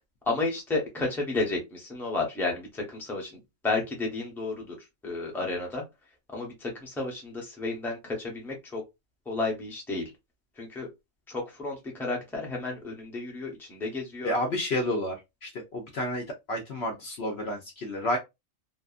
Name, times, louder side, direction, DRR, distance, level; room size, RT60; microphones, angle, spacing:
voice 1, 0.3-4.8 5.0-5.8 6.3-8.8 9.3-10.0 10.6-10.9 11.3-14.3, left 3 dB, ahead, 0.7 m, -32 dB
voice 2, 14.2-15.2 15.4-18.2, left 1 dB, 60° left, 0.8 m, -30 dB
2.7 x 2.3 x 2.4 m
omnidirectional pair, 1.4 m